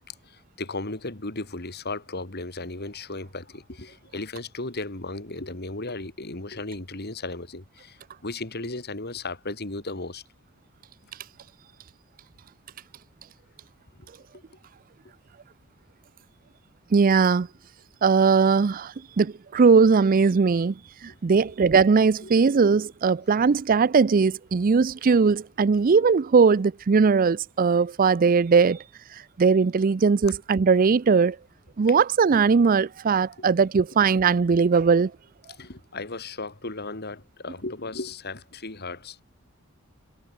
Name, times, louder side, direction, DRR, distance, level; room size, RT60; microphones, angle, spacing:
voice 1, 0.1-10.2 14.0-14.1 21.1-21.2 22.2-22.4 23.2-23.3 24.7-24.8 31.9-32.0 33.4-33.5 35.5-39.2, left 2 dB, 50° left, 3.3 m, -35 dB
voice 2, 16.9-17.5 18.0-20.7 21.0-28.8 29.4-31.4 31.8-35.1, right 5 dB, 40° right, 0.4 m, -19 dB
head